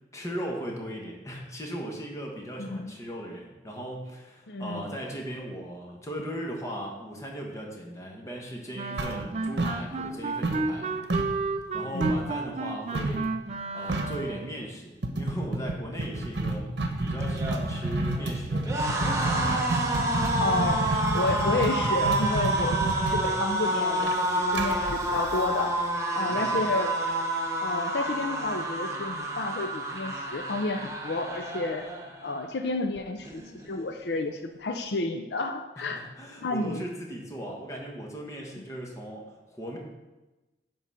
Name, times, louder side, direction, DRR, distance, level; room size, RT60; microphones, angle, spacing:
voice 1, 0.1-10.9 11.4-11.5 11.7-13.3 13.7-16.7 17.0-18.8 26.2-26.6 35.8-39.8, equal, 15° left, -1 dB, 1.3 m, -38 dB
voice 2, 2.6-2.9 4.5-4.9 11.9-12.3 20.4-25.8 26.1-26.9 27.6-31.8 32.2-36.1 36.4-36.8, left 3 dB, 70° left, 5 dB, 0.5 m, -31 dB
Wind instrument woodwind instrument, 8.7-14.5, right 3 dB, 35° right, 0.4 m, -32 dB
sound 1, 9.0-10.2 10.4-12.3 12.9-13.3 13.6-13.7 13.9-14.3 15.0-25.8, right 2 dB, 75° right, 1.0 m, -30 dB
sound 2, 17.2-32.4 32.7-33.0 33.2-34.0, right 2 dB, 15° right, 1.0 m, -29 dB
9.9 x 3.9 x 5.6 m, 1.1 s
head